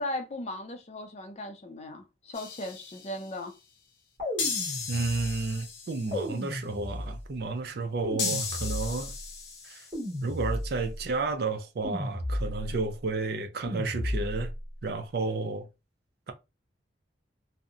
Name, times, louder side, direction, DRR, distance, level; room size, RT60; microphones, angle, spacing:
voice 1, 0.0-3.5, left 1 dB, 40° left, 0.5 m, -37 dB
sound 1, 2.3-3.3 4.4-6.3 8.2-10.1, left 5 dB, 85° left, 0.7 m, -35 dB
sound 2, 4.2-5.4 6.1-7.3 8.0-9.2 9.9-11.0 11.8-12.8 13.7-14.6, left 1 dB, 35° right, 1.4 m, -34 dB
voice 2, 4.9-9.1 9.6-9.9 10.2-14.5 14.8-15.7, right 3 dB, 60° right, 0.4 m, -31 dB
2.7 x 2.1 x 2.4 m
head